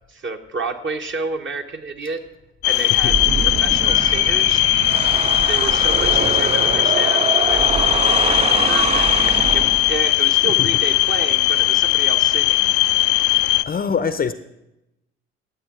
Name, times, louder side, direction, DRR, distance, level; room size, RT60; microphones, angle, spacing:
voice 1, 0.1-2.2 2.6-3.2 3.6-4.6 5.4-7.6 8.3-12.7, right 4 dB, 35° right, 5 dB, 1.2 m, -30 dB
sound 1, 2.6-13.6, left 19 dB, 70° left, 0.5 m, -18 dB
voice 2, 2.7-3.1 10.2-10.7 13.2-14.3, left 6 dB, 25° left, 12 dB, 0.6 m, -26 dB
sound 2, 2.9-10.2, right 6 dB, 20° right, 0.3 m, -24 dB
19.5 x 7.7 x 3.7 m, 0.88 s
hypercardioid pair, 55°, 33 cm